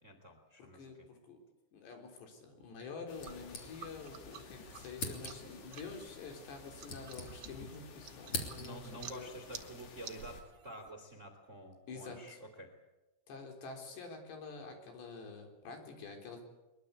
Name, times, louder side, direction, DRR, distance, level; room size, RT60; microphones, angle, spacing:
voice 1, 0.0-1.1 8.5-12.7, right 1 dB, 25° right, 6 dB, 1.9 m, -49 dB
voice 2, 0.6-1.4 1.7-9.3 11.9-12.4 13.3-16.4, left 4 dB, 70° left, 4 dB, 6.0 m, -48 dB
sound 1, 3.1-10.4, left 5 dB, 85° left, 5.1 m, -54 dB
sound 2, 3.2-4.2 4.4-4.5 4.9-5.6 6.5-7.7 8.0-9.0, left 3 dB, 35° left, 3.6 m, -43 dB
sound 3, 3.2-10.9, right 8 dB, 55° right, 1.7 m, -53 dB
22.5 x 22.0 x 8.3 m, 1.1 s
omnidirectional pair, 5.2 m